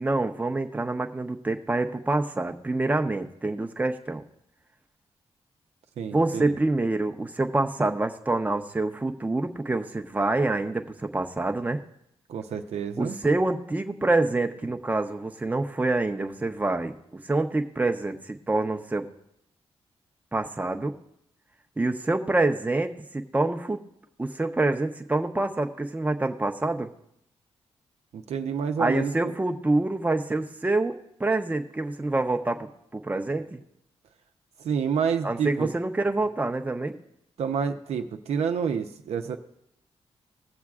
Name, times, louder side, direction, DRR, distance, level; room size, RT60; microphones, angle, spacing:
voice 1, 0.0-4.2 6.1-11.8 13.0-19.1 20.3-20.9 21.8-23.8 24.2-26.9 28.8-33.6 35.2-37.0, right 2 dB, 15° right, 5 dB, 0.7 m, -26 dB
voice 2, 6.0-6.6 12.3-13.2 28.1-29.3 34.6-35.7 37.4-39.4, right 7 dB, 80° right, 6 dB, 0.7 m, -28 dB
19.5 x 7.3 x 2.4 m, 0.76 s
cardioid pair, 90°, 11 cm